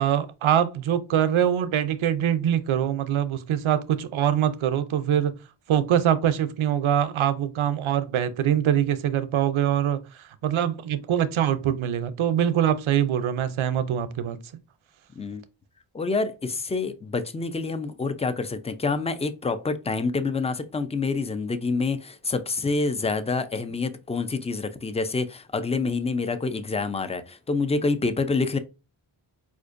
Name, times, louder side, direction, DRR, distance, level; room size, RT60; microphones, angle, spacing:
voice 1, 0.0-5.3 5.7-14.4, right 10 dB, 70° right, 0.6 m, -23 dB
voice 2, 15.9-28.6, left 3 dB, 15° left, 0.4 m, -27 dB
4.3 x 2.5 x 2.5 m
cardioid pair, 45°, 50 cm